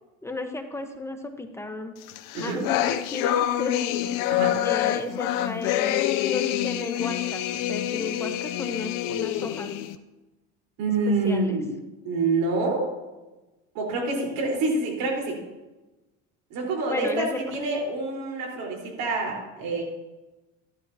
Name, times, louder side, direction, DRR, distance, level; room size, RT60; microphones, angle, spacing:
voice 1, 0.2-1.9 2.4-3.9 4.6-9.8 11.1-11.6 16.9-17.4, left 2 dB, 10° left, 5 dB, 1.2 m, -34 dB
sound 1, 2.1-10.0, left 12 dB, 65° left, 0.7 m, -26 dB
voice 2, 10.8-11.7 12.0-12.9 13.7-15.4 16.5-19.8, right 3 dB, 70° right, -1 dB, 4.7 m, -27 dB
14.0 x 11.5 x 2.9 m, 1.1 s
supercardioid pair, 115°, 34 cm